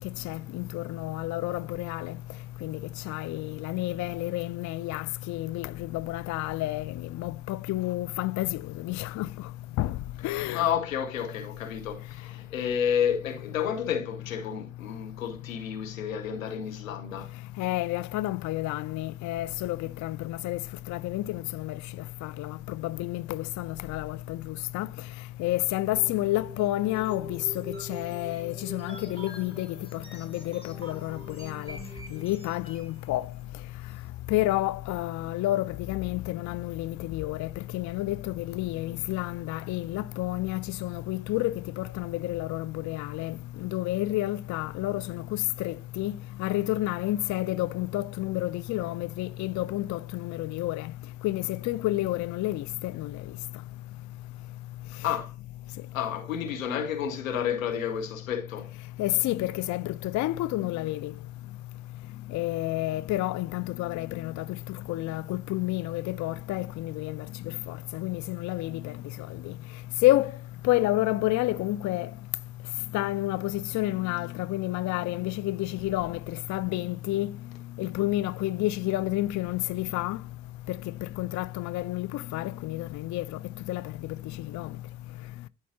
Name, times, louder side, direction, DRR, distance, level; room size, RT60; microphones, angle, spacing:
voice 1, 0.2-2.1 2.6-2.8 3.1-9.3 9.8-9.9 10.2-10.6 17.6-20.6 20.9-21.8 22.2-22.6 22.8-24.4 24.7-24.9 25.4-31.8 32.1-33.2 34.3-37.5 37.7-43.3 43.6-50.9 51.2-53.1 59.0-61.1 62.3-64.4 64.9-67.2 67.7-68.9 69.5-69.6 70.0-70.3 70.6-72.1 72.9-77.3 77.8-80.2 80.7-80.8 81.2-83.2 83.7-83.8 84.5-84.7, left 16 dB, 50° left, 0.4 m, -30 dB
voice 2, 10.5-17.3 49.5-49.6 55.0-55.3 55.9-58.7, left 8 dB, 85° left, 1.1 m, -30 dB
sound 1, 25.9-33.0, equal, 15° left, 2.6 m, -44 dB
12.5 x 4.4 x 2.7 m
figure-of-eight pair, 40°, 40 cm